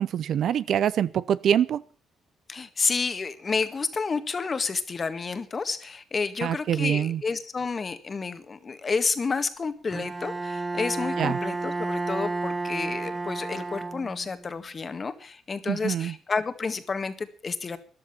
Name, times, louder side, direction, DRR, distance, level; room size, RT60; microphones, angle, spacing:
voice 1, 0.0-1.8 6.4-7.2 11.2-11.4 15.7-16.2, right 9 dB, 65° right, 18 dB, 0.6 m, -25 dB
voice 2, 2.5-17.8, left 4 dB, 35° left, 10 dB, 1.8 m, -30 dB
Bowed string instrument, 9.9-14.4, right 3 dB, 15° right, 0.8 m, -31 dB
13.5 x 11.0 x 7.1 m, 0.41 s
cardioid pair, 90°, 0 cm